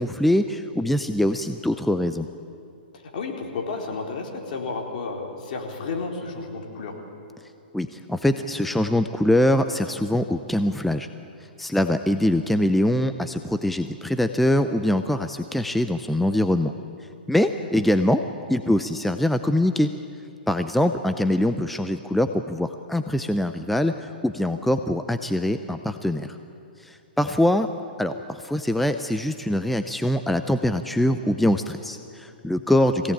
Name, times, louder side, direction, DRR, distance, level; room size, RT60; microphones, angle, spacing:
voice 1, 0.0-2.3 7.7-11.1 11.6-16.7 17.3-18.2 18.5-19.9 20.5-26.4 26.8-27.7 28.0-33.1, left 1 dB, ahead, 8 dB, 0.5 m, -23 dB
voice 2, 3.1-6.9 17.6-17.7, left 4 dB, 55° left, 1 dB, 4.0 m, -32 dB
22.5 x 17.0 x 8.7 m, 2.6 s
hypercardioid pair, 145°, 5 cm